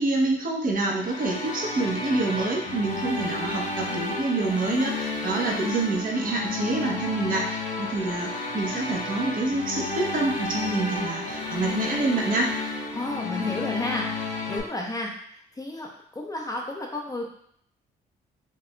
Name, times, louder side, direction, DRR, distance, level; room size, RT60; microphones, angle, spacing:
voice 1, 0.0-12.5, right 2 dB, 45° right, 0 dB, 1.0 m, -27 dB
sound 1, 0.9-14.6, left 3 dB, 40° left, 1.2 m, -32 dB
voice 2, 12.9-15.1 15.5-17.3, left 1 dB, 20° left, -1 dB, 0.7 m, -32 dB
5.0 x 2.7 x 2.2 m, 0.67 s
supercardioid pair, 65°, 20 cm